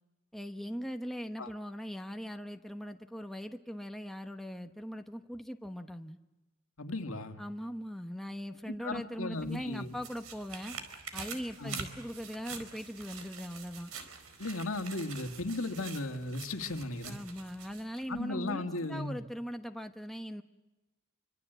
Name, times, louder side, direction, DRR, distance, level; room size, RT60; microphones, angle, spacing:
voice 1, 0.3-6.2 7.4-10.8 11.1-13.9 17.0-20.4, equal, ahead, 5 dB, 1.0 m, -40 dB
voice 2, 6.8-7.4 8.7-9.9 11.6-11.8 14.4-17.2 18.1-19.2, left 2 dB, 70° left, 5 dB, 2.2 m, -36 dB
sound 1, 9.3-18.1 18.5-18.6, right 6 dB, 85° right, 4.3 m, -46 dB
28.0 x 24.5 x 8.2 m, 1.1 s
head